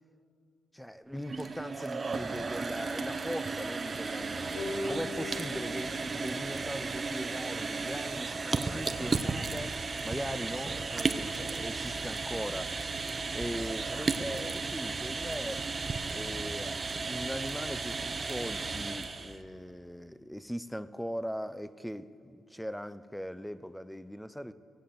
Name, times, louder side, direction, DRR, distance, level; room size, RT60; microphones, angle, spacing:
voice 1, 0.7-9.8 10.0-13.0 13.3-15.6 16.1-24.5, equal, ahead, 0.5 m, -40 dB
sound 1, 1.1-19.4, right 4 dB, 30° right, 0.7 m, -34 dB
sound 2, 2.2-2.7 4.2-5.1 6.4-7.2 8.7-9.4 12.1-12.6 14.1-14.9 16.3-17.1 18.6-19.3, left 1 dB, 35° left, 2.5 m, -53 dB
sound 3, 4.6-7.8, left 2 dB, 85° left, 3.7 m, -41 dB
18.5 x 8.5 x 7.7 m
cardioid pair, 105°, 0 cm